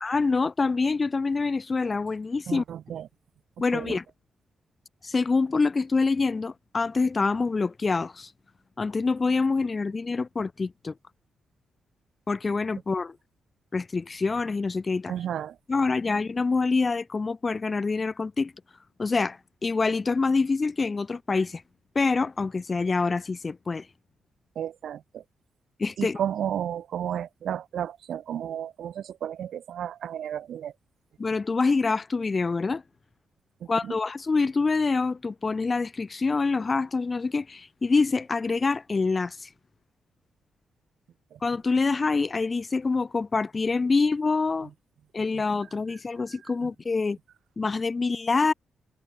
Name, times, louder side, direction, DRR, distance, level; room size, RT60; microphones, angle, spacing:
voice 1, 0.0-2.6 3.6-4.0 5.0-8.3 8.8-10.9 12.3-13.2 13.7-15.1 15.7-18.5 19.0-21.6 22.0-23.9 25.8-26.2 31.2-32.8 33.7-39.5 41.4-44.7 45.1-47.2 47.6-48.5, left 4 dB, 35° left, 0.4 m, -26 dB
voice 2, 2.5-3.1 3.7-4.0 15.1-15.6 24.6-25.2 26.0-30.7 33.8-33.9 41.3-41.4 46.6-46.7, right 9 dB, 75° right, 0.4 m, -32 dB
cardioid pair, 80°, 0 cm